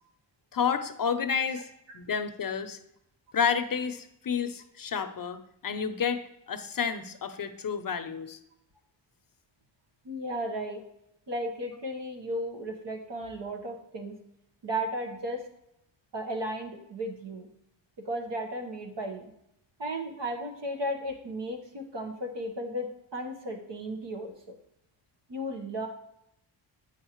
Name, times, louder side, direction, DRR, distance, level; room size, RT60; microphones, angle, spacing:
voice 1, 0.5-1.7 1.9-2.8 3.3-8.4, left 6 dB, 45° left, 10 dB, 0.7 m, -30 dB
voice 2, 10.0-10.8 11.3-14.2 14.6-15.4 16.1-17.5 18.0-19.3 19.8-24.6 25.3-25.9, equal, 65° right, 4 dB, 1.3 m, -35 dB
8.6 x 6.4 x 3.0 m, 0.79 s
cardioid pair, 75°, 46 cm